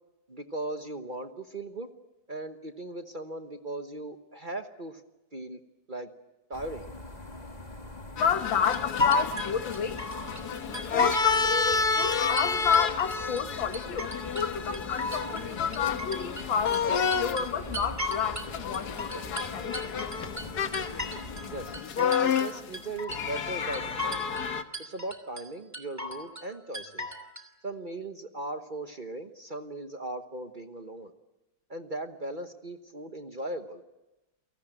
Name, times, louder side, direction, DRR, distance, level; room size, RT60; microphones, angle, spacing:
voice 1, 0.3-1.9 2.3-5.0 5.3-5.6 5.9-6.1 6.5-6.9 21.5-24.3 24.8-27.1 27.6-31.1 31.7-33.8, right 1 dB, 30° right, 1.0 m, -38 dB
sound 1, 6.5-21.8, left 2 dB, 20° left, 1.9 m, -43 dB
voice 2, 8.2-10.0 10.9-19.9, left 7 dB, 90° left, 2.1 m, -30 dB
sound 2, 8.2-24.6, left 5 dB, 60° left, 1.6 m, -31 dB
sound 3, 8.7-10.4 10.7-11.4 11.7-13.4 13.7-14.5 14.7-16.5 16.7-18.5 18.7-21.5 21.7-22.5 22.7-23.5 23.7-24.5 24.7-25.4 25.7-26.5 26.7-27.4, left 1 dB, 10° right, 2.6 m, -34 dB
29.0 x 18.5 x 9.1 m
omnidirectional pair, 2.0 m